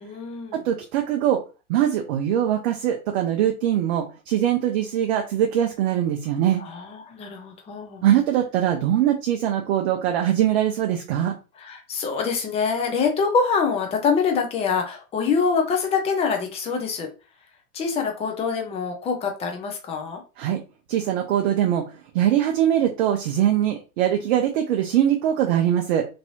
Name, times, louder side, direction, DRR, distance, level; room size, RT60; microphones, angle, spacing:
voice 1, 0.0-0.6 6.6-8.0 11.6-17.1 17.7-20.2, left 5 dB, 15° left, 3 dB, 0.6 m, -25 dB
voice 2, 0.5-1.4 1.7-6.6 8.0-11.3 20.4-20.6 20.9-21.9 22.1-26.1, right 11 dB, 50° right, 3 dB, 0.6 m, -22 dB
3.1 x 2.6 x 2.7 m, 0.31 s
hypercardioid pair, 120°, 44 cm